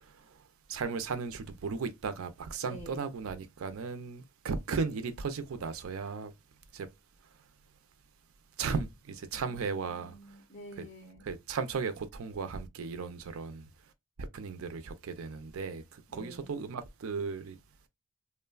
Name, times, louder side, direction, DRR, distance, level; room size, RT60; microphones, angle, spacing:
voice 1, 0.7-6.3 6.7-6.9 8.6-10.1 10.8-10.9 11.3-13.6 14.3-15.8 16.1-17.6, right 5 dB, 70° right, 0.4 m, -36 dB
voice 2, 2.6-3.1 9.3-11.3 16.1-16.6, right 1 dB, 30° left, 1.1 m, -49 dB
3.1 x 2.2 x 2.2 m
head